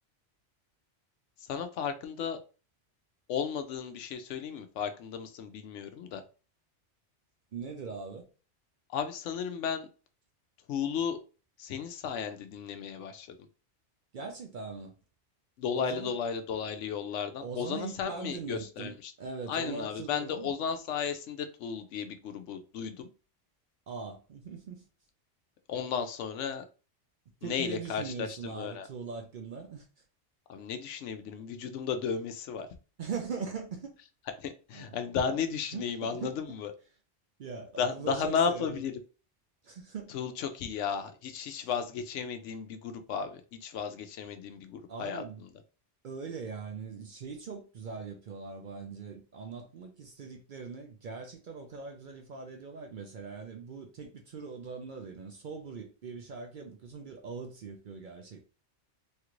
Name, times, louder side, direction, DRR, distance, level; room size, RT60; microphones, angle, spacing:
voice 1, 1.5-2.4 3.3-6.2 8.9-9.9 10.7-11.2 11.6-13.3 15.6-19.1 19.5-23.1 25.7-26.6 27.4-28.9 30.5-32.7 34.4-36.7 37.8-38.9 40.1-45.5, left 7 dB, 85° left, 0.9 m, -34 dB
voice 2, 7.5-8.3 14.1-15.0 15.7-16.1 17.4-20.5 23.9-24.8 27.4-29.9 33.0-34.0 34.7-35.0 35.7-36.6 37.4-38.8 39.6-40.1 41.5-41.7 44.9-45.4 46.0-58.4, right 5 dB, 60° right, 0.6 m, -41 dB
3.1 x 2.5 x 2.9 m
omnidirectional pair, 1.2 m